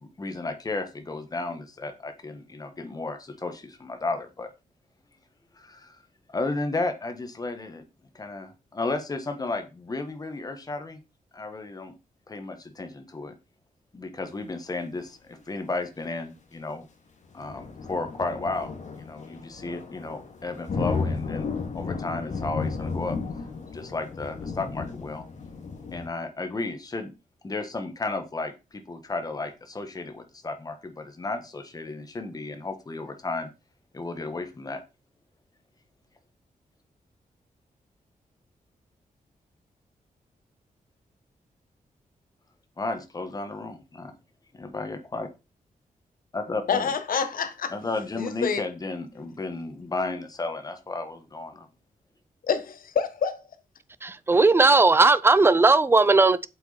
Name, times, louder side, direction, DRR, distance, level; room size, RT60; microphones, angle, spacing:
voice 1, 0.0-4.5 5.5-5.9 6.3-7.8 8.1-11.0 11.3-11.9 12.3-13.3 13.9-16.9 17.3-23.2 23.7-25.3 25.9-27.1 27.4-33.5 33.9-34.8 42.8-44.1 44.5-45.3 46.3-46.9 47.7-51.7, left 3 dB, 25° left, 1.5 m, -33 dB
sound 1, 17.3-26.1, left 4 dB, 55° left, 2.3 m, -33 dB
voice 2, 46.7-47.7 48.1-48.6 52.5-53.4, left 6 dB, 75° left, 1.4 m, -27 dB
voice 3, 54.0-56.5, right 3 dB, 15° right, 0.5 m, -18 dB
8.2 x 7.8 x 4.2 m
wide cardioid pair, 160°, 14 cm